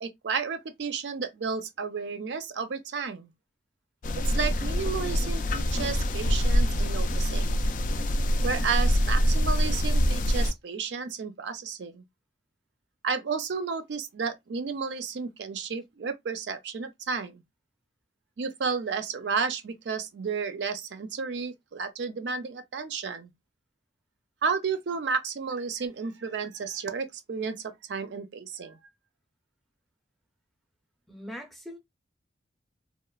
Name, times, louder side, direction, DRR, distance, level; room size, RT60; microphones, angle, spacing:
voice 1, 0.0-3.3 4.3-7.6 8.4-12.0 13.0-17.4 18.4-23.3 24.4-28.8, right 5 dB, 75° right, 0.4 m, -32 dB
sound 1, 4.0-10.5, equal, 45° left, 0.3 m, -25 dB
voice 2, 31.1-31.8, equal, ahead, 0.6 m, -41 dB
2.9 x 2.0 x 2.3 m
head